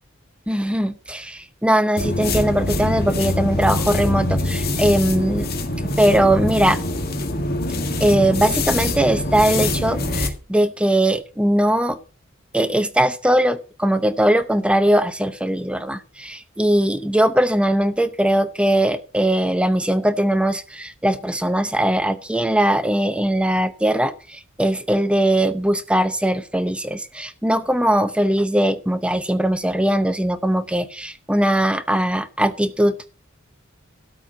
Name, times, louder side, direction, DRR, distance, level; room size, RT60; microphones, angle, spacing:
voice 1, 0.5-5.5 6.0-6.8 8.0-12.0 12.5-33.1, right 1 dB, 5° right, 11 dB, 0.7 m, -20 dB
sound 1, 2.0-10.3, left 2 dB, 50° left, 1.8 m, -24 dB
13.0 x 4.6 x 8.0 m, 0.36 s
head